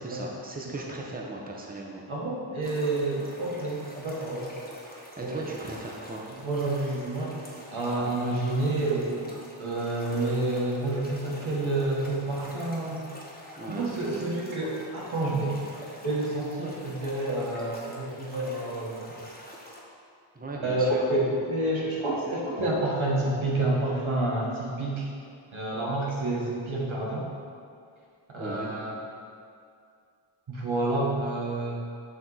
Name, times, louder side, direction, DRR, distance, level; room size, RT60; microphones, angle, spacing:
voice 1, 0.0-2.0 5.2-6.3 13.6-13.8 20.3-21.3 28.4-28.7, right 2 dB, 20° right, -1 dB, 0.8 m, -37 dB
voice 2, 2.1-4.5 5.2-5.4 6.4-9.3 9.6-13.1 13.7-15.6 16.0-19.2 20.6-25.1 25.5-27.3 28.3-28.9 30.5-31.8, right 2 dB, 85° right, -4 dB, 1.2 m, -29 dB
sound 1, 2.6-19.8, equal, 20° left, 1.1 m, -46 dB
8.1 x 2.9 x 3.9 m, 2.3 s
wide cardioid pair, 40°, 47 cm